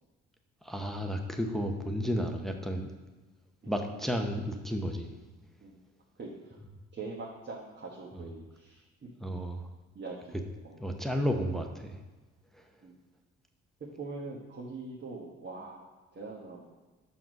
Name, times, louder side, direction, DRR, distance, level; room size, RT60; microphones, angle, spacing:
voice 1, 0.6-2.9 3.6-5.2 9.2-9.7 10.8-12.0 12.5-12.7, equal, ahead, 4 dB, 0.7 m, -32 dB
voice 2, 6.2-6.6 6.9-8.8 9.9-10.4 10.6-10.8 12.8-13.0 14.0-15.8 16.1-16.7, right 3 dB, 35° right, -3 dB, 1.3 m, -42 dB
6.2 x 5.7 x 5.2 m, 1.2 s
cardioid pair, 90°, 30 cm